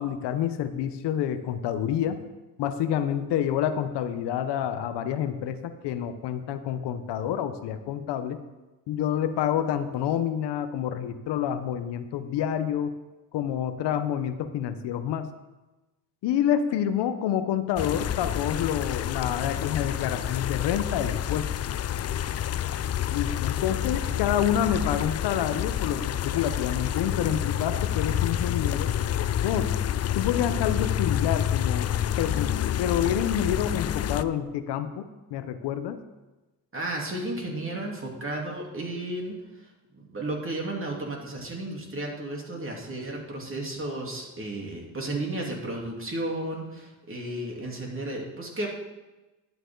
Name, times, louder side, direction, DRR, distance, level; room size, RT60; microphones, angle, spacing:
voice 1, 0.0-2.2 2.6-8.4 8.9-12.9 13.3-15.3 16.2-21.5 23.1-28.9 29.4-29.7 30.1-31.9 32.2-35.0 35.3-36.0, left 9 dB, 80° left, 10 dB, 0.9 m, -28 dB
sound 1, 17.8-34.2, left 10 dB, 40° left, 0.4 m, -28 dB
voice 2, 23.7-24.0 36.7-39.7 39.9-48.7, right 1 dB, 30° right, -1 dB, 3.2 m, -33 dB
11.5 x 9.0 x 3.9 m, 1.1 s
cardioid pair, 75°, 41 cm